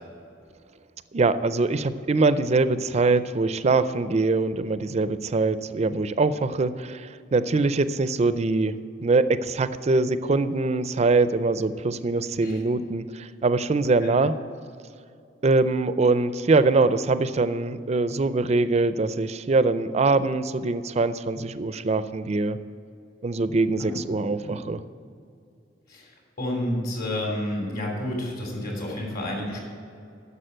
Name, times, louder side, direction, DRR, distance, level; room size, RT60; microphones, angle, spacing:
voice 1, 1.1-14.3 15.4-22.6 23.2-24.8, right 3 dB, 35° right, 13 dB, 0.4 m, -23 dB
voice 2, 26.4-29.6, left 1 dB, 55° left, -1 dB, 3.0 m, -30 dB
11.0 x 7.0 x 7.7 m, 2.5 s
head